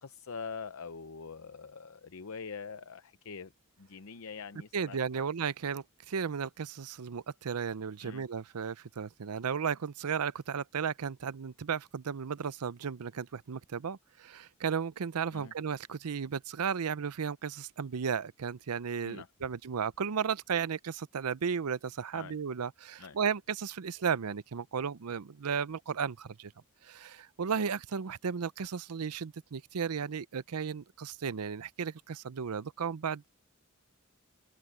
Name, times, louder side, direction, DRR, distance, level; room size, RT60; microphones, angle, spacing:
voice 1, 0.0-3.5 3.8-5.2 8.0-8.2 15.3-15.5 19.0-19.3 22.1-22.4 23.0-23.2, left 5 dB, 65° left, 0.7 m, -44 dB
voice 2, 4.7-26.5 26.8-33.3, right 6 dB, 90° right, 0.6 m, -34 dB
head